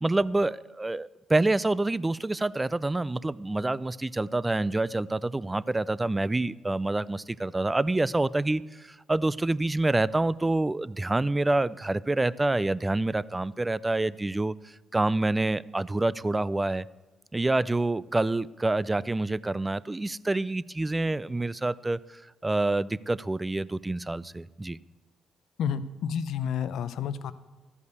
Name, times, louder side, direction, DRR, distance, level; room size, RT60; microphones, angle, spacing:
voice 1, 0.0-16.9 17.3-24.8, right 2 dB, 15° right, 19 dB, 0.3 m, -27 dB
voice 2, 25.6-27.3, left 7 dB, 75° left, 13 dB, 0.5 m, -30 dB
13.5 x 5.4 x 8.1 m, 1.2 s
cardioid pair, 90°, 0 cm